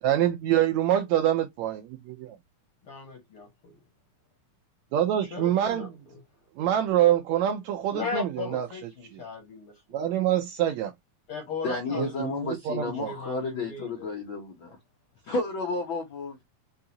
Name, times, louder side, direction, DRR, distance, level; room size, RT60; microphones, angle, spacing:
voice 1, 0.0-2.4 4.9-5.9 6.6-8.7 9.1-9.2 9.9-10.9 11.9-13.1, right 11 dB, 80° right, 1.7 m, -25 dB
voice 2, 2.8-3.8 5.3-6.2 7.9-10.0 11.3-12.1 12.5-12.6 13.0-14.1, left 5 dB, 60° left, 1.4 m, -37 dB
voice 3, 11.6-14.8 15.2-16.4, left 3 dB, 80° left, 1.1 m, -32 dB
5.5 x 2.4 x 2.8 m
omnidirectional pair, 3.7 m